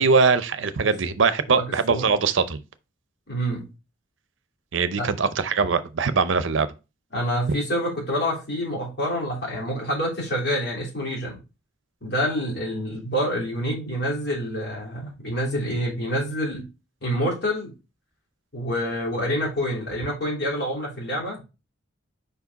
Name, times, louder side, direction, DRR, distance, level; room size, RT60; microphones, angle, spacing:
voice 1, 0.0-2.6 4.7-6.7, right 5 dB, 70° right, 0.6 m, -21 dB
voice 2, 1.5-2.1 3.3-3.7 5.0-5.1 7.1-11.4 12.0-16.6 17.0-17.7 18.5-21.4, equal, 55° left, 3.0 m, -27 dB
5.1 x 4.8 x 4.0 m
head